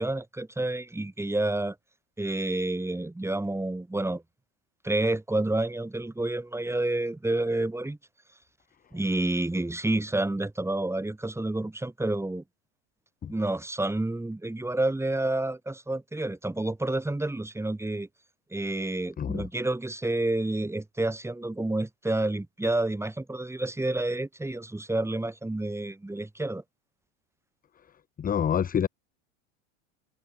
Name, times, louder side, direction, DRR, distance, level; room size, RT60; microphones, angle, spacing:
voice 1, 0.0-1.8 2.2-4.2 4.8-8.0 8.9-12.4 13.3-18.1 18.5-26.6, right 2 dB, 5° right, 5.1 m, -29 dB
voice 2, 28.2-28.9, left 8 dB, 25° left, 0.9 m, -27 dB
hypercardioid pair, 95°, 37 cm